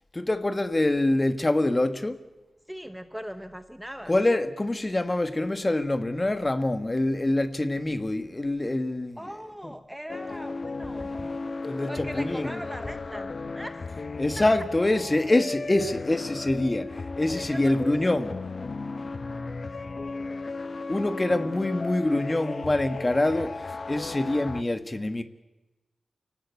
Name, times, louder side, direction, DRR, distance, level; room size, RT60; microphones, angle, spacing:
voice 1, 0.1-2.2 4.1-9.3 9.6-9.7 11.0-11.3 11.6-12.6 14.2-18.4 20.9-25.2, left 2 dB, 20° left, 1.6 m, -25 dB
voice 2, 2.7-4.1 9.2-11.1 11.9-13.7 17.4-17.7 18.0-18.1 20.9-21.4, equal, 5° right, 0.9 m, -40 dB
sound 1, 10.1-24.6, left 3 dB, 40° left, 0.9 m, -35 dB
28.5 x 18.0 x 8.3 m
wide cardioid pair, 140°, 0 cm